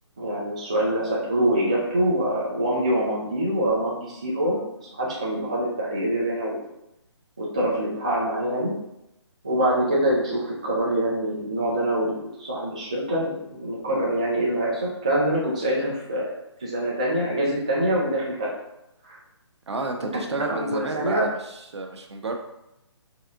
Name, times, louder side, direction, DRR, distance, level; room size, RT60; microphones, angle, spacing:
voice 1, 0.2-4.6 5.0-6.6 7.4-8.7 9.4-16.3 16.6-18.5 19.0-19.2 20.1-20.2 20.5-21.2, right 1 dB, 15° right, -6 dB, 0.4 m, -25 dB
voice 2, 19.7-22.4, right 3 dB, 65° right, 3 dB, 0.8 m, -31 dB
4.2 x 3.5 x 3.6 m, 0.86 s
hypercardioid pair, 175°, 15 cm